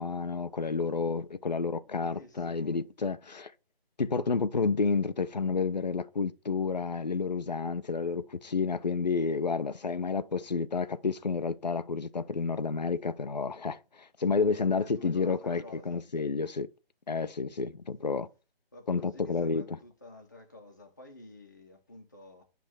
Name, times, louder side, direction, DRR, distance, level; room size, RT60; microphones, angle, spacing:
voice 1, 0.0-3.5 4.0-16.7 17.1-18.3 18.9-19.8, left 4 dB, 45° left, 0.5 m, -30 dB
voice 2, 1.9-2.8 14.8-16.0 18.7-22.4, left 2 dB, 20° left, 0.9 m, -51 dB
9.7 x 3.4 x 6.2 m
hypercardioid pair, 175°, 30 cm